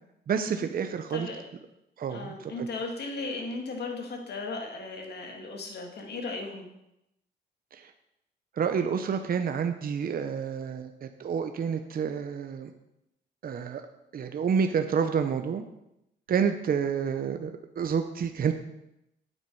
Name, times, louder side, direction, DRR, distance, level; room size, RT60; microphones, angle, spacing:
voice 1, 0.3-1.3 2.0-2.3 7.7-7.9 8.6-12.7 13.4-13.8 14.1-15.6 16.3-18.5, right 6 dB, 50° right, 7 dB, 0.8 m, -29 dB
voice 2, 1.1-1.4 2.1-6.7, left 3 dB, 60° left, 2 dB, 2.2 m, -36 dB
9.1 x 8.1 x 4.7 m, 0.84 s
cardioid pair, 95°, 19 cm